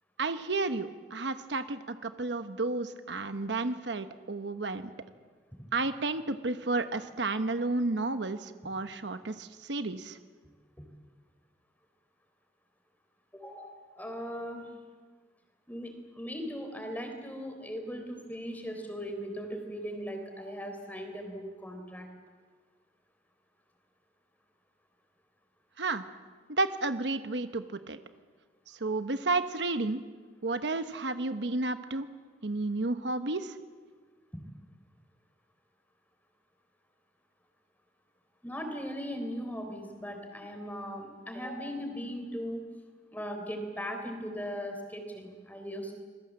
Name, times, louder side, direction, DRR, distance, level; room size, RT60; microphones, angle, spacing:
voice 1, 0.2-4.9 5.7-10.2 25.8-26.0 26.5-28.0 28.7-30.0 30.4-32.1 32.4-33.6, right 3 dB, 90° right, 9 dB, 1.1 m, -32 dB
voice 2, 13.3-14.7 15.7-22.1 34.3-34.4 38.4-42.6 43.1-45.9, equal, 10° left, 4 dB, 3.8 m, -38 dB
27.5 x 21.0 x 7.6 m, 1.5 s
head